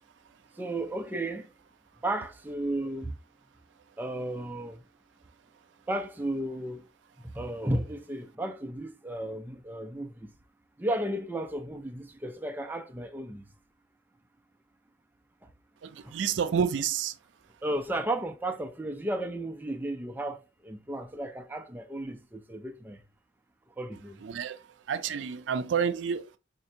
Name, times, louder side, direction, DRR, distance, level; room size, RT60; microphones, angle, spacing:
voice 1, 0.6-1.5 2.0-3.2 4.0-4.8 5.9-6.9 7.2-10.3 10.8-13.4 16.0-16.1 17.6-23.0 23.8-24.2, right 1 dB, 10° right, 0.4 m, -34 dB
voice 2, 15.8-17.2 24.2-26.3, right 7 dB, 80° right, 0.4 m, -29 dB
4.2 x 2.7 x 2.7 m
head